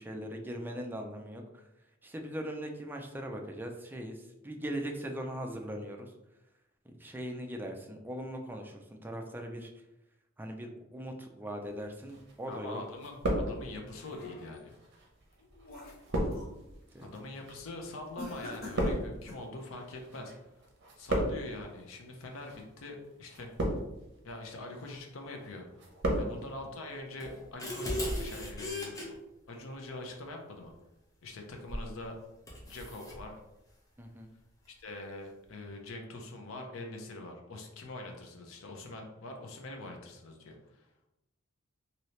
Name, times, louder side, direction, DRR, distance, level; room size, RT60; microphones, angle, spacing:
voice 1, 0.0-1.6 2.0-6.1 6.8-9.8 10.4-12.8 16.9-17.1 26.2-26.4 34.0-34.3, equal, 10° right, 3 dB, 0.4 m, -40 dB
sound 1, 12.1-12.7 13.0-14.0 14.7-20.4 20.6-21.6 22.3-22.6 23.3-24.1 24.5-25.0 25.4-26.3 26.6-26.7, right 1 dB, 60° right, 0.7 m, -34 dB
voice 2, 12.5-14.8 17.0-20.3 21.0-23.5 24.2-25.7 26.2-29.0 29.5-30.7 31.2-32.2 32.7-33.3 34.7-41.1, left 2 dB, 90° left, 2 dB, 0.6 m, -44 dB
sound 2, 13.6-14.7 15.2-16.6 17.0-17.3 18.2-19.5, left 2 dB, 50° left, 0.8 m, -47 dB
sound 3, 27.2-29.1 31.7-31.9 32.5-33.2, left 1 dB, 15° left, 0.7 m, -36 dB
2.8 x 2.7 x 3.1 m, 0.92 s
head